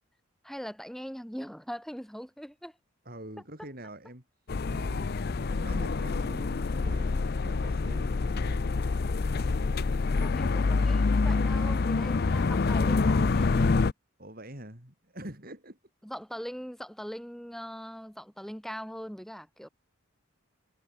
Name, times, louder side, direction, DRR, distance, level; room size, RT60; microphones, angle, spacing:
voice 1, 0.4-2.7 10.2-13.9 16.0-19.7, equal, ahead, 2.9 m, -41 dB
voice 2, 3.1-4.2 4.7-5.2 5.4-8.7 10.2-10.4 14.2-15.8, right 1 dB, 45° right, 7.1 m, -45 dB
sound 1, 4.5-13.9, left 4 dB, 50° left, 0.5 m, -26 dB
head